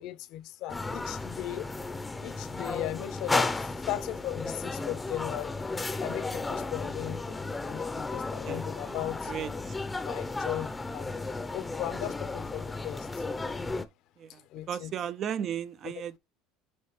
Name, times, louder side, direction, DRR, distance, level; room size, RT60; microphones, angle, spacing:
voice 1, 0.0-1.7 2.2-3.5 3.9-5.5 6.0-9.3 10.1-10.7 10.9-11.1 11.5-13.0 14.5-14.9 15.8-15.9, left 14 dB, 60° left, 0.8 m, -37 dB
sound 1, 0.7-13.9, left 3 dB, 10° left, 0.6 m, -34 dB
voice 2, 8.5-9.0 9.3-9.5 14.2-14.4 14.7-16.2, right 9 dB, 40° right, 0.4 m, -35 dB
9.4 x 3.3 x 3.2 m
supercardioid pair, 125°, 0 cm